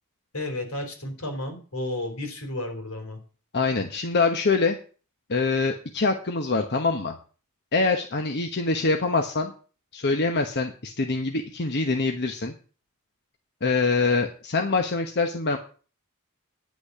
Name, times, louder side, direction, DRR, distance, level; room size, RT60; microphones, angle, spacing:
voice 1, 0.3-3.2, left 1 dB, 85° left, 4 dB, 4.1 m, -32 dB
voice 2, 3.5-4.8 5.3-7.1 7.7-9.5 9.9-12.5 13.6-15.6, left 3 dB, 50° left, 4 dB, 1.1 m, -24 dB
10.0 x 6.2 x 8.5 m, 0.38 s
head